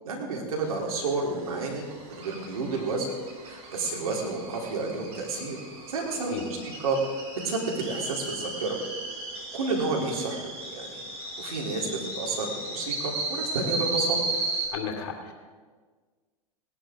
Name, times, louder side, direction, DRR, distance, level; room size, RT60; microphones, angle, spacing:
voice 1, 0.0-3.1 3.5-5.6 5.9-8.8 9.5-10.4 10.7-11.0 11.4-14.2, right 3 dB, 70° right, -1 dB, 3.7 m, -30 dB
sound 1, 0.6-14.7, right 2 dB, 30° right, 4.6 m, -35 dB
voice 2, 14.7-15.3, left 7 dB, 55° left, 2 dB, 2.6 m, -33 dB
19.0 x 11.0 x 3.8 m, 1.5 s
figure-of-eight pair, 95°, 19 cm